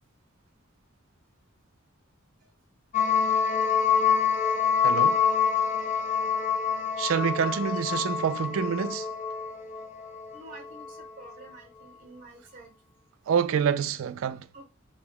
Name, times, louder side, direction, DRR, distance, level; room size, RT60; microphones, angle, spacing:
sound 1, 2.9-11.1, left 6 dB, 35° left, 0.4 m, -26 dB
voice 1, 4.8-5.2 7.0-9.1 13.3-14.4, right 7 dB, 75° right, 0.3 m, -27 dB
voice 2, 7.4-8.0 10.3-12.7 14.5-14.7, right 2 dB, 40° right, 0.8 m, -49 dB
2.8 x 2.2 x 3.5 m
head